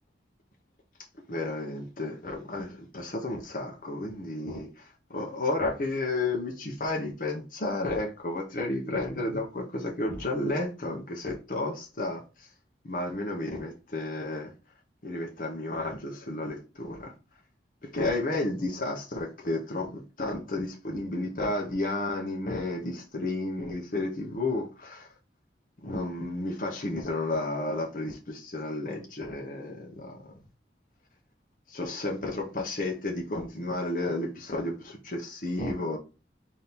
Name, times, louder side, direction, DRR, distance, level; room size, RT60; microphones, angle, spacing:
voice 1, 1.3-4.8 5.1-12.5 12.8-14.5 15.0-17.1 17.8-25.1 25.8-30.2 31.7-36.0, left 2 dB, 50° left, 0.8 m, -32 dB
4.2 x 2.8 x 3.5 m
head